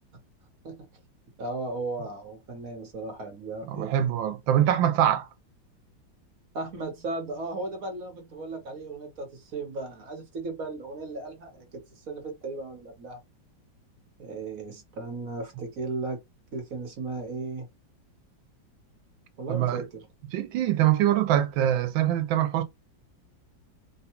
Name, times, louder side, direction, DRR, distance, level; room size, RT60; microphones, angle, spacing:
voice 1, 1.4-4.0 6.5-13.2 14.2-16.2 16.5-17.7 19.4-20.1, right 3 dB, 50° right, 1.2 m, -36 dB
voice 2, 3.7-5.3 19.5-19.8 20.3-22.6, right 11 dB, 80° right, 1.3 m, -24 dB
3.6 x 2.3 x 2.9 m
omnidirectional pair, 2.1 m